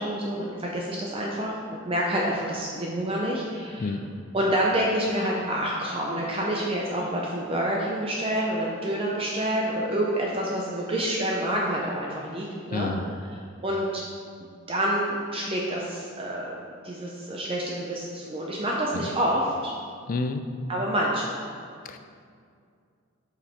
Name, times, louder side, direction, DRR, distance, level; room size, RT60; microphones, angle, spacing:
voice 1, 0.0-4.0 4.3-13.0 13.3-14.0 14.7-16.5 16.8-19.7 20.7-21.4, right 1 dB, 25° right, -3 dB, 0.6 m, -28 dB
voice 2, 12.7-13.0 18.9-19.1 20.1-20.4 21.8-22.0, left 3 dB, 40° left, 8 dB, 0.4 m, -29 dB
7.2 x 5.3 x 4.2 m, 2.2 s
head